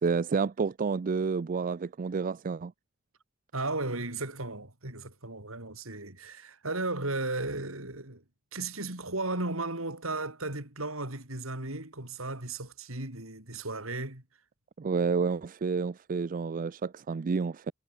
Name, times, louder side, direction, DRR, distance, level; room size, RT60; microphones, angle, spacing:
voice 1, 0.0-2.7 14.8-17.7, right 5 dB, 40° right, 0.4 m, -29 dB
voice 2, 3.5-8.2 8.5-14.2, right 2 dB, 75° right, 5.7 m, -35 dB
head